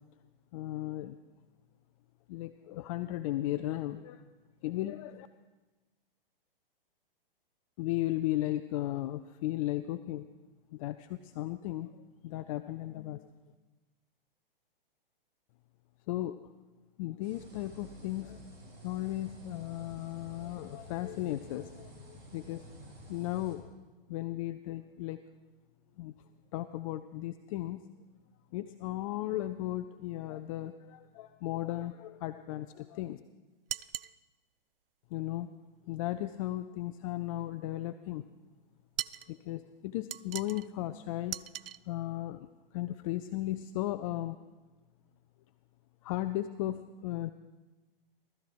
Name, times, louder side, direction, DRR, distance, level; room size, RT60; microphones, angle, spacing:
voice 1, 0.5-1.2 2.3-4.2 4.6-5.3 7.8-10.2 10.7-12.0 12.2-13.3 16.1-16.4 17.0-18.4 18.8-22.6 23.1-23.7 24.1-25.2 26.0-26.1 26.5-27.9 28.5-33.2 35.1-35.5 35.9-38.2 39.3-41.4 41.9-42.5 42.7-44.4 46.0-47.3, left 15 dB, 35° left, 10 dB, 0.5 m, -36 dB
sound 1, 17.2-23.5, equal, 35° right, 3.9 m, -51 dB
sound 2, 33.7-34.2 39.0-39.3 40.1-40.7 41.3-41.8, right 11 dB, 75° right, 0.5 m, -38 dB
18.5 x 13.5 x 4.7 m, 1.2 s
hypercardioid pair, 125°, 29 cm